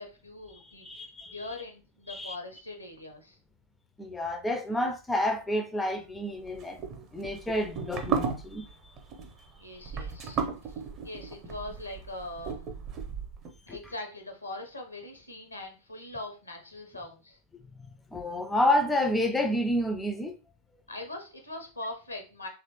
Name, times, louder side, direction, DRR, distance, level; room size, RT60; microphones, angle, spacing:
voice 1, 0.0-0.8 1.3-3.4 9.6-10.4 10.7-12.9 13.7-17.4 20.9-22.5, left 2 dB, 85° left, 0.8 m, -41 dB
voice 2, 0.5-1.4 2.1-2.4 4.0-6.8 7.1-8.7 13.7-13.8 17.7-20.3, left 1 dB, 10° left, 0.4 m, -29 dB
sound 1, 6.5-13.5, right 5 dB, 35° right, 0.6 m, -35 dB
3.0 x 2.4 x 2.8 m
figure-of-eight pair, 90°, 0 cm